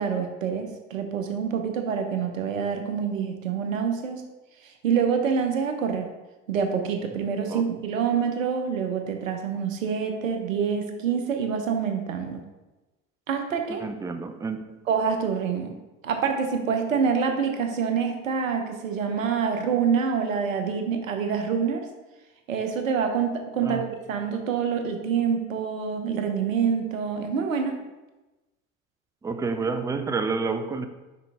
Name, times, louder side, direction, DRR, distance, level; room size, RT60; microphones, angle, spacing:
voice 1, 0.0-4.2 4.8-6.1 6.5-12.4 13.3-13.8 14.9-21.8 22.5-27.8, right 6 dB, 80° right, 5 dB, 0.9 m, -26 dB
voice 2, 13.8-14.8 23.6-23.9 29.2-30.9, right 4 dB, 10° right, 8 dB, 0.4 m, -29 dB
5.8 x 5.0 x 3.5 m, 1.1 s
hypercardioid pair, 75°, 39 cm